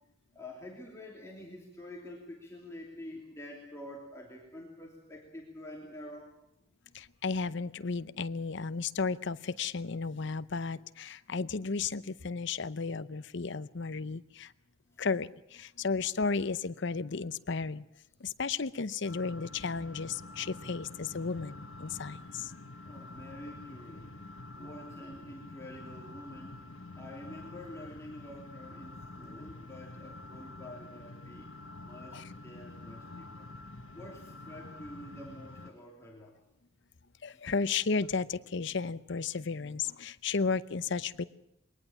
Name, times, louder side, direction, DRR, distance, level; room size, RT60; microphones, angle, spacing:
voice 1, 0.3-6.3 22.8-24.2 24.5-26.6 27.0-31.5 31.8-33.5 33.9-36.3 37.3-37.5, left 1 dB, 15° left, -2 dB, 3.1 m, -47 dB
voice 2, 6.9-14.5 15.0-17.8 18.2-22.5 32.1-32.2 37.2-41.2, left 4 dB, 60° left, 15 dB, 0.7 m, -34 dB
sound 1, 19.0-35.7, left 2 dB, 85° left, 1.3 m, -47 dB
22.5 x 19.0 x 7.3 m, 0.80 s
head